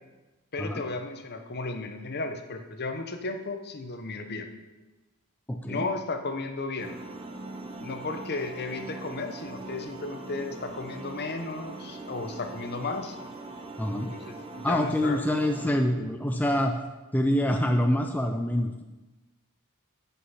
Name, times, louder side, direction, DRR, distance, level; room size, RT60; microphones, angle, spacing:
voice 1, 0.5-4.5 5.7-7.0 7.8-13.2 14.1-15.2, left 3 dB, 50° left, 6 dB, 1.0 m, -34 dB
voice 2, 5.5-5.9 13.8-14.1 14.6-16.8 17.1-18.8, left 1 dB, 10° left, 3 dB, 0.6 m, -26 dB
sound 1, 6.8-15.7, right 2 dB, 25° right, 1.1 m, -41 dB
14.0 x 5.8 x 5.7 m, 1.1 s
head